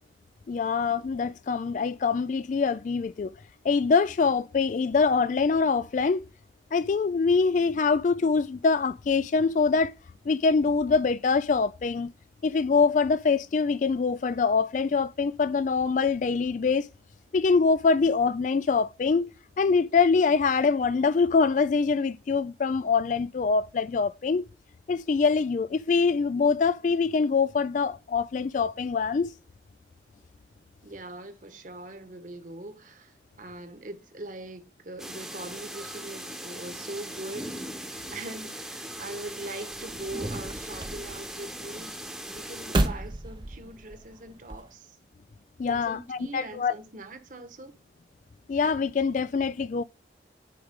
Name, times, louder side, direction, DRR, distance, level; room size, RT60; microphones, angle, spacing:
voice 1, 0.5-3.3 3.6-6.2 6.7-9.9 10.3-12.1 12.4-16.9 17.3-19.3 19.6-24.4 24.9-29.3 45.6-46.7 48.5-49.8, left 4 dB, 45° left, 0.3 m, -24 dB
voice 2, 30.8-37.5 38.1-42.0 42.3-45.0 45.7-47.7, right 2 dB, 45° right, 1.2 m, -41 dB
sound 1, 35.0-42.9, right 1 dB, ahead, 1.0 m, -39 dB
sound 2, 39.7-44.7, right 1 dB, 25° right, 0.6 m, -33 dB
10.0 x 4.9 x 3.7 m
head